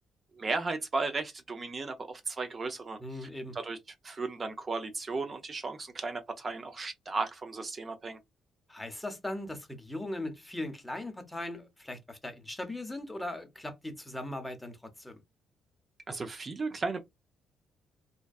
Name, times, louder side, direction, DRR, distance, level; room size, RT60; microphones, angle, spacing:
voice 1, 0.3-3.8 4.0-8.2 16.1-17.0, right 3 dB, 35° right, 0.4 m, -35 dB
voice 2, 3.0-3.5 8.7-15.2, left 1 dB, 10° left, 0.7 m, -39 dB
2.5 x 2.2 x 2.2 m
cardioid pair, 90°, 0 cm